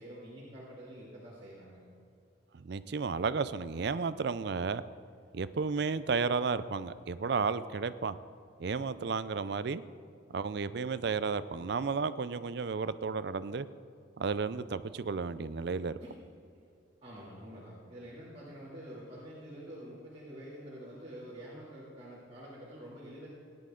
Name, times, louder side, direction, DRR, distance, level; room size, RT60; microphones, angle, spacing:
voice 1, 0.0-1.8 16.0-16.2 17.0-23.3, equal, 30° right, -8 dB, 2.5 m, -47 dB
voice 2, 2.5-4.8 5.3-8.2 8.6-9.8 10.3-13.7 14.2-16.0, right 5 dB, 55° right, 14 dB, 0.4 m, -33 dB
17.0 x 10.5 x 3.8 m, 2.5 s
head